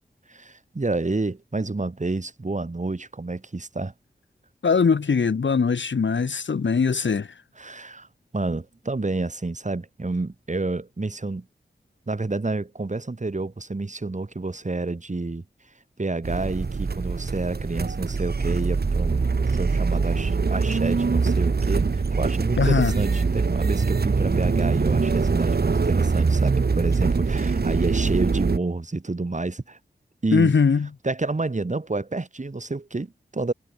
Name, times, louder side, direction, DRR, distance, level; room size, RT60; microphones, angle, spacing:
voice 1, 0.3-3.9 7.6-8.1 8.3-11.4 12.1-15.4 16.0-29.8 30.2-30.5 31.0-33.5, right 3 dB, 40° right, 5.1 m, -29 dB
voice 2, 4.6-7.3 22.6-22.9 30.3-30.9, left 5 dB, 85° left, 1.8 m, -21 dB
sound 1, 16.2-28.6, right 4 dB, 60° right, 1.6 m, -23 dB
wide cardioid pair, 85°, 19 cm